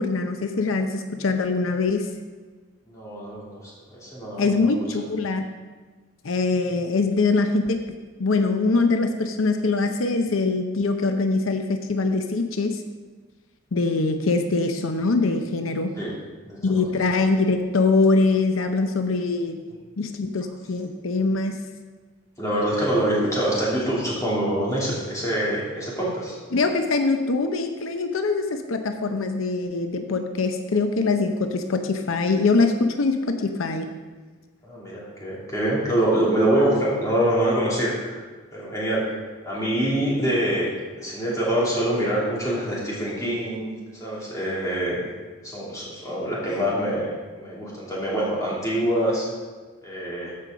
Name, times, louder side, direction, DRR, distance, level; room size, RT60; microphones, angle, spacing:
voice 1, 0.0-2.1 4.4-5.5 6.2-7.8 8.2-12.8 13.7-15.9 16.6-19.6 20.0-21.6 26.5-33.9, left 3 dB, 90° left, 6 dB, 0.7 m, -23 dB
voice 2, 2.9-4.7 16.0-16.1 16.4-16.9 22.4-26.4 34.6-38.2 38.5-39.2 39.4-40.7 41.0-43.7 44.0-45.1 45.4-47.1 47.4-49.3 49.8-50.3, right 1 dB, 15° left, -7 dB, 2.9 m, -25 dB
14.5 x 5.4 x 5.0 m, 1.4 s
head